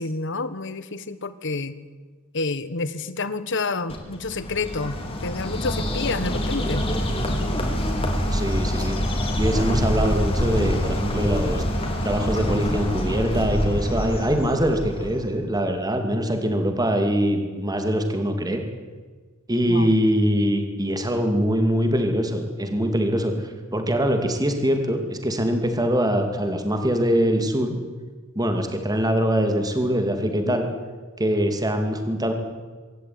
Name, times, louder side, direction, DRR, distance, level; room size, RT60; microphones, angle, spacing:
voice 1, 0.0-1.8 2.3-6.8 19.6-19.9 30.4-30.5, left 3 dB, 60° left, 14 dB, 1.4 m, -29 dB
Bird, 3.9-15.3, equal, 25° left, 4.0 m, -26 dB
voice 2, 8.3-9.0 9.4-11.6 12.0-18.6 19.5-27.8 28.4-30.7 31.2-32.3, equal, 20° right, 5 dB, 2.6 m, -23 dB
25.5 x 13.5 x 9.6 m, 1.5 s
head